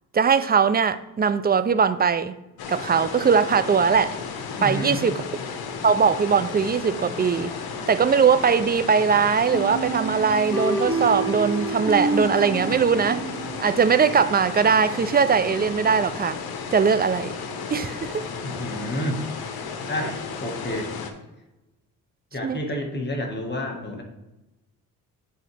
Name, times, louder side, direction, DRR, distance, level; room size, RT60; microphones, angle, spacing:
voice 1, 0.1-2.4 2.7-4.2 4.6-5.2 5.8-7.5 7.9-13.2 13.6-16.4 16.7-17.3 17.7-18.3 22.4-22.6, right 6 dB, 25° right, 0.4 m, -20 dB
sound 1, 2.6-21.1, left 5 dB, 80° left, 1.0 m, -34 dB
voice 2, 4.6-5.1 18.4-19.2 19.9-20.9 22.3-24.0, left 1 dB, 30° left, 1.6 m, -29 dB
sound 2, 9.5-14.2, right 2 dB, 5° left, 2.2 m, -29 dB
10.0 x 4.1 x 3.4 m
cardioid pair, 85°, 37 cm